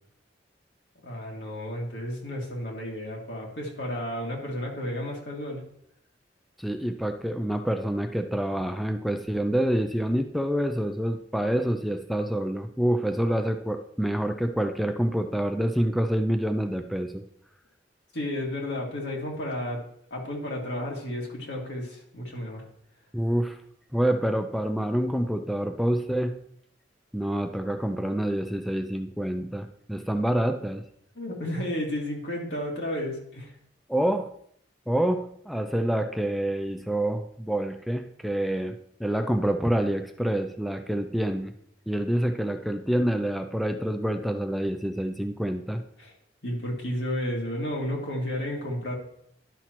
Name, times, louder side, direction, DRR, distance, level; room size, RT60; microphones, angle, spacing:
voice 1, 1.0-5.6 18.1-19.8 20.1-22.7 31.2-33.5 46.0-46.1 46.4-48.9, left 1 dB, 75° left, -1 dB, 2.1 m, -32 dB
voice 2, 6.6-17.2 23.1-23.6 23.9-26.4 27.1-30.8 33.9-34.3 34.9-41.5 41.9-45.8, right 1 dB, ahead, 6 dB, 0.3 m, -27 dB
11.0 x 5.9 x 3.0 m, 0.69 s
head